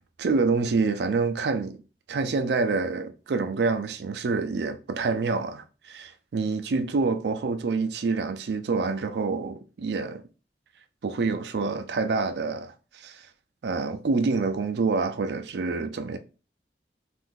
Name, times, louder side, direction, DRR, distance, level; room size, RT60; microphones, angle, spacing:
voice 1, 0.2-1.8 2.1-10.2 11.0-13.3 13.6-16.2, right 4 dB, 75° right, 0.4 m, -27 dB
2.6 x 2.5 x 3.7 m
head